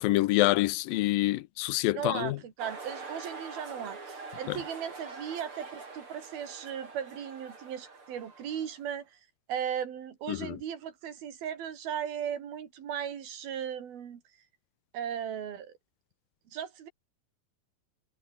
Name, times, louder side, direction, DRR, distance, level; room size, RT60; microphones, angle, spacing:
voice 1, 0.0-2.4 4.5-4.6 10.3-10.6, left 18 dB, 80° left, 2.4 m, -26 dB
voice 2, 1.9-9.2 9.5-14.2 14.9-15.7 16.5-16.9, right 9 dB, 85° right, 4.5 m, -37 dB
sound 1, 2.6-8.9, right 4 dB, 35° right, 5.4 m, -44 dB
omnidirectional pair, 4.2 m